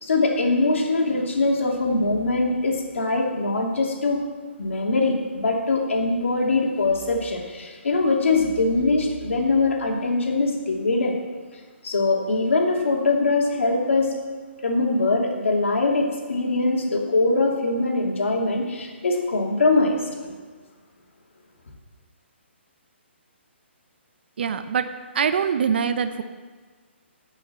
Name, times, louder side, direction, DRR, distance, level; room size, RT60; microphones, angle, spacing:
voice 1, 0.0-4.2 4.6-11.2 11.8-14.1 14.6-20.3, left 3 dB, 80° left, 0 dB, 2.6 m, -22 dB
voice 2, 24.4-24.9 25.1-26.2, right 7 dB, 55° right, 9 dB, 0.8 m, -23 dB
14.0 x 5.8 x 7.5 m, 1.5 s
hypercardioid pair, 165°, 7 cm